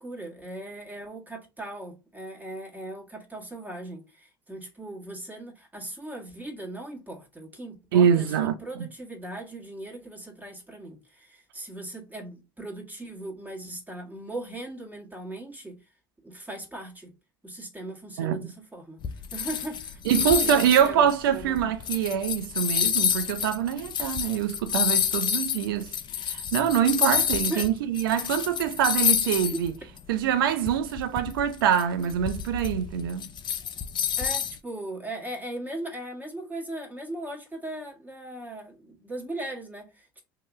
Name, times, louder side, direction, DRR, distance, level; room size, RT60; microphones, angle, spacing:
voice 1, 0.0-15.8 16.2-17.1 17.4-19.0 19.3-21.7 27.5-27.7 34.2-40.2, right 1 dB, 15° right, 1.6 m, -39 dB
voice 2, 7.9-8.9 18.2-18.5 20.1-25.9 26.2-29.7 30.1-33.3, right 9 dB, 85° right, 0.5 m, -24 dB
sound 1, 19.0-27.7 27.9-29.7 30.0-30.1 30.7-34.6, left 9 dB, 45° left, 0.5 m, -28 dB
2.9 x 2.9 x 3.5 m
hypercardioid pair, 70°, 11 cm